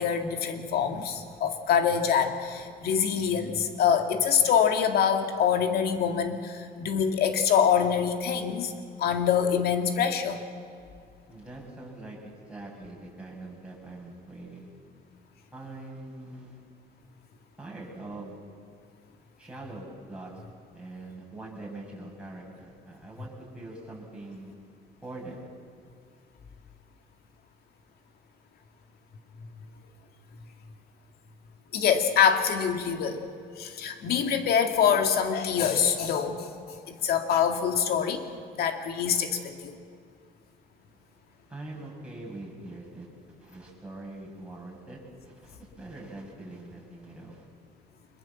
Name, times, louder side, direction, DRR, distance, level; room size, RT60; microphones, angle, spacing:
voice 1, 0.0-8.7 9.0-10.5 31.7-33.3 33.6-38.3 38.6-39.8, left 7 dB, 65° left, 6 dB, 2.3 m, -25 dB
voice 2, 11.3-14.7 15.5-16.6 17.6-18.4 19.4-20.3 20.7-24.5 25.0-25.4 41.5-43.1 43.4-45.0 45.2-47.5, right 2 dB, 5° right, -4 dB, 7.3 m, -43 dB
25.0 x 21.5 x 7.4 m, 2.2 s
cardioid pair, 110°, 17 cm